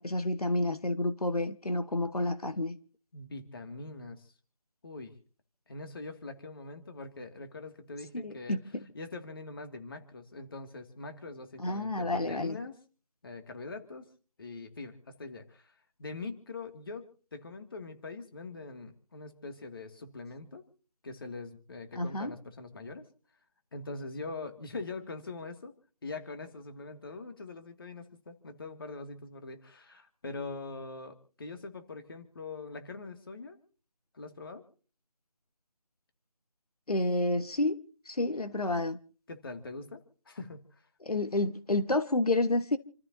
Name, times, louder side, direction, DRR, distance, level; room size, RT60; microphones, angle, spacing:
voice 1, 0.0-2.7 8.2-8.8 11.6-12.6 22.0-22.3 36.9-37.8 38.0-39.0 41.0-42.8, left 2 dB, 85° left, 1.5 m, -29 dB
voice 2, 3.1-4.3 4.8-5.2 5.7-8.6 8.9-12.8 13.2-14.1 14.4-15.7 16.0-20.6 21.0-23.1 23.7-25.7 26.0-33.6 34.1-34.6 39.3-40.7, left 3 dB, 40° left, 2.3 m, -43 dB
29.0 x 14.0 x 2.8 m
figure-of-eight pair, 165°, 19 cm